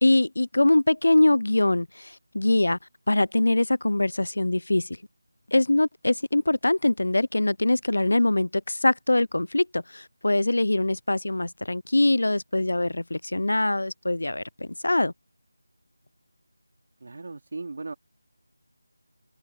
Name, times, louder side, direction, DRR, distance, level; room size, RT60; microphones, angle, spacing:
voice 1, 0.0-2.8 3.1-5.0 5.5-15.1, left 2 dB, 70° left, 0.5 m, -23 dB
voice 2, 17.0-17.9, right 3 dB, 50° right, 4.3 m, -37 dB
figure-of-eight pair, 165°, 0 cm